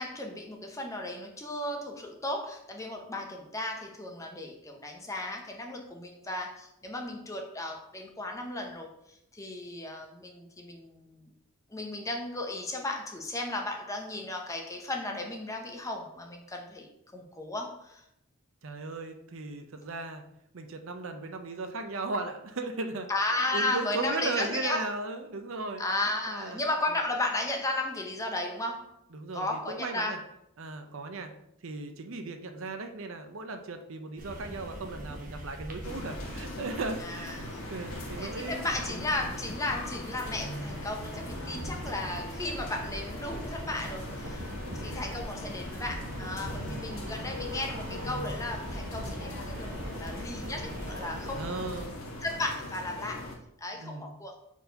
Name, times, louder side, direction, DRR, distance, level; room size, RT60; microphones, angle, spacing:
voice 1, 0.0-8.9 9.3-11.2 11.7-16.9 17.1-18.0 23.1-24.8 25.8-29.0 29.3-30.2 37.0-37.5 38.2-44.5 44.8-51.8 52.2-53.3 53.6-54.3, left 2 dB, 15° left, 2 dB, 0.8 m, -35 dB
voice 2, 18.6-20.2 20.5-23.1 23.5-25.8 26.3-26.6 29.1-30.2 30.6-31.3 31.6-37.4 37.7-39.0 41.5-41.8 44.6-45.0 46.6-47.1 51.3-51.9 53.7-54.1, right 3 dB, 65° right, 6 dB, 0.6 m, -37 dB
sound 1, 34.2-51.8, right 1 dB, 35° right, 1.0 m, -41 dB
sound 2, 35.8-53.4, left 1 dB, 70° left, 1.2 m, -41 dB
4.6 x 4.3 x 5.1 m, 0.78 s
head